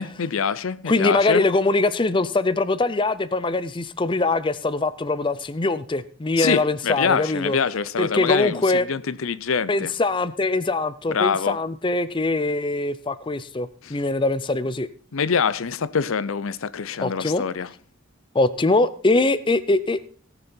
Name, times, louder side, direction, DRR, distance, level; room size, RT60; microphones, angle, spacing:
voice 1, 0.0-1.4 6.4-9.9 11.1-11.6 13.8-14.0 15.1-17.7, left 6 dB, 85° left, 0.6 m, -25 dB
voice 2, 0.9-7.6 8.0-8.9 9.7-14.9 17.0-17.4 18.3-20.0, left 2 dB, 25° left, 0.5 m, -22 dB
18.5 x 6.9 x 4.4 m
head